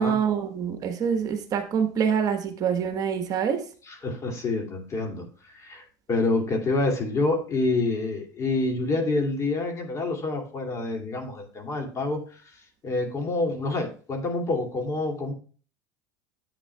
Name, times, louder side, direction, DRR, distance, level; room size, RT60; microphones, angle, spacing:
voice 1, 0.0-3.6, right 7 dB, 45° right, 6 dB, 1.3 m, -25 dB
voice 2, 3.9-12.4 12.8-15.3, left 2 dB, 35° left, 2 dB, 2.5 m, -27 dB
10.5 x 8.4 x 2.3 m, 0.40 s
supercardioid pair, 95°, 9 cm